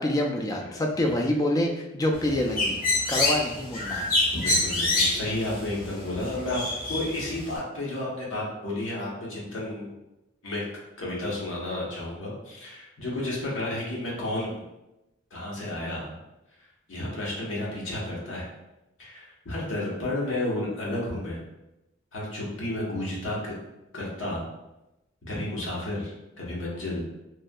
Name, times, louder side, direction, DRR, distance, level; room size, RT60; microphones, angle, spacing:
voice 1, 0.0-2.8 3.1-4.1, left 1 dB, 20° left, 1 dB, 0.3 m, -26 dB
Bird, 2.1-7.6, left 2 dB, 45° left, 0.8 m, -27 dB
voice 2, 4.3-6.6 6.9-9.9 10.4-10.6 11.0-14.6 15.3-16.1 16.9-18.5 19.0-21.4 22.1-23.6 23.9-24.5 25.3-27.1, left 1 dB, 75° left, -5 dB, 0.9 m, -32 dB
3.1 x 2.7 x 2.2 m, 0.94 s
head